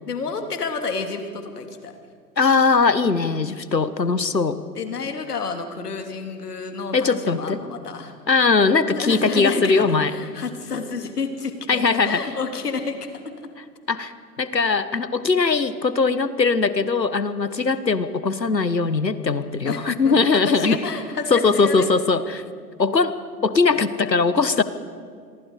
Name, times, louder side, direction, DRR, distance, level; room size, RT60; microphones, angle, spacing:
voice 1, 0.1-1.9 4.7-8.1 8.9-13.3 19.6-21.9, left 4 dB, 65° left, 6 dB, 3.1 m, -29 dB
voice 2, 2.4-4.6 6.9-7.6 8.3-10.1 11.7-12.2 13.9-14.1 14.4-20.8 21.3-22.4 22.8-23.1 23.4-24.6, left 4 dB, 90° left, 14 dB, 1.4 m, -20 dB
28.0 x 23.0 x 4.9 m, 2.1 s
figure-of-eight pair, 120°, 49 cm